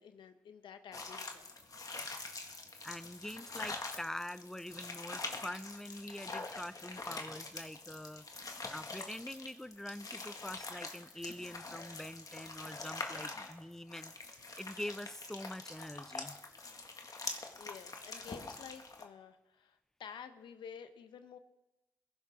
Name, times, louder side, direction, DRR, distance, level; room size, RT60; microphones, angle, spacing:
voice 1, 0.0-1.5 17.5-21.4, left 7 dB, 90° left, 9 dB, 0.9 m, -51 dB
sound 1, 0.9-19.0, left 3 dB, 50° left, 1.9 m, -45 dB
voice 2, 2.8-8.2 8.7-16.4, left 1 dB, 5° left, 15 dB, 0.6 m, -45 dB
21.0 x 11.0 x 3.7 m, 0.98 s
cardioid pair, 50°, 8 cm